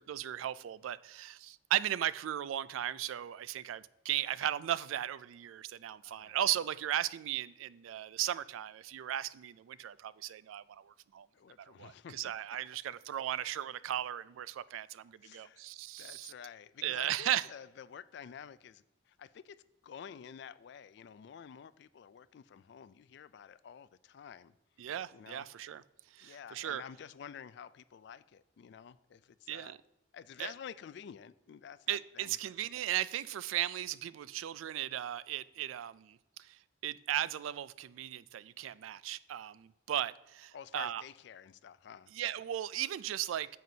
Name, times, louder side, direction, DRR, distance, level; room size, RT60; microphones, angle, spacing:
voice 1, 0.0-11.3 11.6-16.3 16.8-17.5 24.8-25.8 26.1-26.8 29.5-29.8 30.4-30.5 31.9-36.6 36.8-41.0 42.1-43.5, right 11 dB, 85° right, 0.3 m, -36 dB
voice 2, 6.0-6.3 11.3-12.3 15.2-15.7 16.0-24.5 25.1-25.5 26.2-29.8 30.1-32.4 40.5-42.1, left 7 dB, 60° left, 0.3 m, -50 dB
9.2 x 7.7 x 2.7 m
head